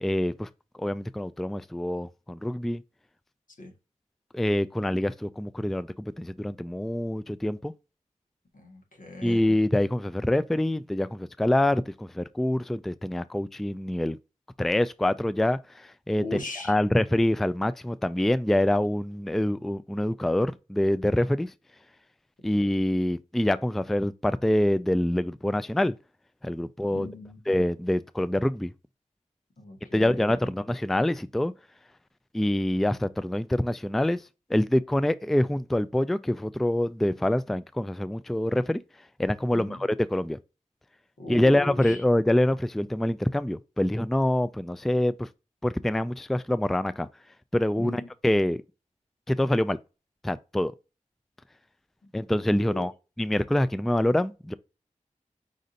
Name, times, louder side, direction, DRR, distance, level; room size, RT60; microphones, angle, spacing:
voice 1, 0.0-0.5 0.8-2.8 4.3-5.9 6.2-7.7 9.2-14.2 14.6-16.4 16.7-21.5 22.4-25.9 26.4-27.1 27.5-28.7 29.9-31.5 32.3-34.2 34.5-38.8 39.2-40.4 41.3-45.3 45.6-47.1 47.5-48.6 49.3-49.8 50.2-50.7 52.1-52.9 53.2-54.5, left 1 dB, ahead, 0.3 m, -25 dB
voice 2, 8.5-9.4 16.2-16.8 26.9-27.4 29.6-30.5 39.5-39.8 41.2-42.0 47.8-48.1 52.7-52.8, left 2 dB, 80° left, 1.7 m, -39 dB
5.2 x 2.6 x 3.8 m
wide cardioid pair, 55°, 14 cm